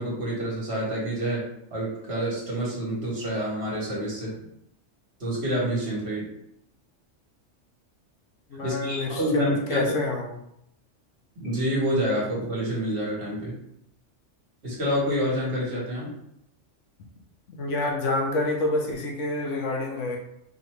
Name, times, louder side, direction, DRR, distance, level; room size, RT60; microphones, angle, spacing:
voice 1, 0.0-1.4 1.7-4.3 5.2-6.3 8.6-9.9 11.4-13.5 14.6-16.1, equal, 55° right, -5 dB, 1.6 m, -27 dB
voice 2, 8.5-10.3 17.5-20.2, left 2 dB, 75° left, 1 dB, 1.1 m, -28 dB
4.2 x 2.9 x 3.2 m, 0.77 s
omnidirectional pair, 1.3 m